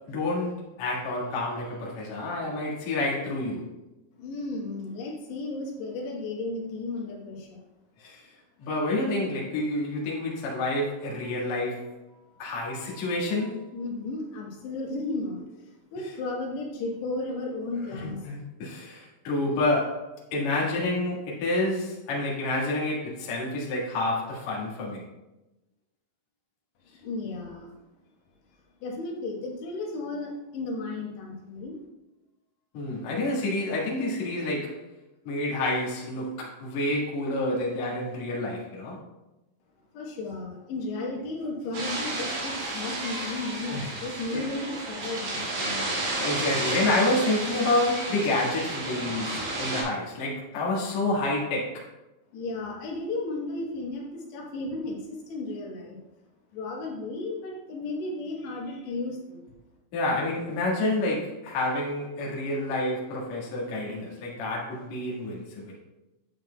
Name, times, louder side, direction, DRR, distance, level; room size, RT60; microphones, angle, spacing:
voice 1, 0.1-3.7 8.0-8.2 8.6-11.9 12.4-13.7 17.9-25.0 32.7-34.8 35.2-39.0 43.7-44.0 44.3-44.4 46.2-51.9 59.9-65.7, left 2 dB, 55° left, -4 dB, 2.4 m, -28 dB
voice 2, 4.2-7.6 13.7-18.3 27.0-27.8 28.8-31.8 39.9-46.0 52.3-56.0 56.5-59.4, left 2 dB, 80° left, -1 dB, 3.3 m, -34 dB
sound 1, 41.7-49.8, right 2 dB, 75° right, 4.5 m, -32 dB
9.5 x 7.5 x 2.2 m, 1.0 s
omnidirectional pair, 5.0 m